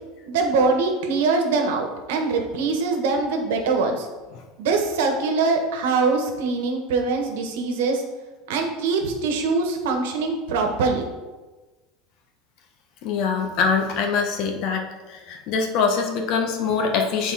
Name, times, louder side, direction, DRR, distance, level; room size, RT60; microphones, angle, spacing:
voice 1, 0.3-4.1 4.6-8.0 8.5-11.1, right 4 dB, 85° right, 4 dB, 1.2 m, -23 dB
voice 2, 13.0-17.3, left 5 dB, 45° left, 3 dB, 1.0 m, -24 dB
8.4 x 4.1 x 4.1 m, 1.2 s
supercardioid pair, 165°, 0 cm